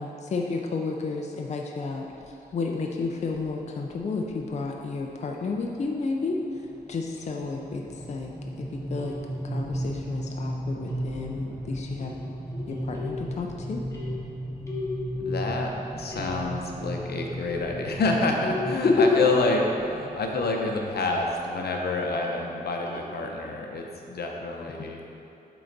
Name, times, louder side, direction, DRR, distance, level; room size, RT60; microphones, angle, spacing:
voice 1, 0.0-2.1 2.5-6.4 6.9-7.8 8.1-8.3 8.6-9.1 9.4-12.1 12.7-13.8 18.8-19.1, left 4 dB, 40° left, 0 dB, 0.5 m, -30 dB
sound 1, 2.2-2.5 3.3-3.5 3.9-4.0 4.3-4.6 5.0-21.3, right 1 dB, 15° right, 0.6 m, -36 dB
sound 2, 7.2-7.3 9.0-9.6 10.9-11.5 12.0-13.5 13.9-15.8 16.1-16.7 17.4-20.4 20.9-21.5 22.1-23.2, left 3 dB, 15° left, 1.1 m, -39 dB
voice 2, 15.2-25.0, left 3 dB, 70° left, 1 dB, 0.8 m, -28 dB
7.8 x 3.9 x 4.0 m, 2.8 s
wide cardioid pair, 120°, 17 cm